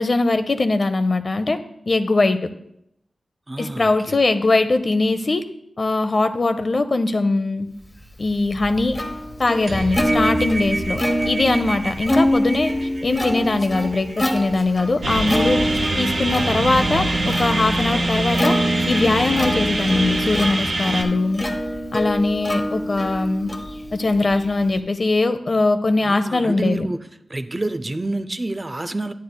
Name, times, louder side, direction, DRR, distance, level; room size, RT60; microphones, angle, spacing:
voice 1, 0.0-1.6 1.9-2.4 3.6-5.4 5.8-7.7 8.2-9.0 9.4-11.0 11.3-12.7 13.0-15.6 16.0-18.5 18.9-21.4 21.9-23.5 23.9-26.9, left 2 dB, 45° left, 9 dB, 0.6 m, -21 dB
voice 2, 3.5-4.1 26.1-27.0 27.3-29.1, right 2 dB, 25° right, 11 dB, 0.4 m, -28 dB
Plucked string instrument, 8.0-24.8, equal, 25° left, 1.0 m, -26 dB
sound 1, 9.7-15.3, right 2 dB, 55° right, 0.8 m, -31 dB
sound 2, 15.0-21.0, right 1 dB, 75° right, 1.2 m, -23 dB
9.5 x 9.4 x 2.2 m, 0.76 s
wide cardioid pair, 75°, 0 cm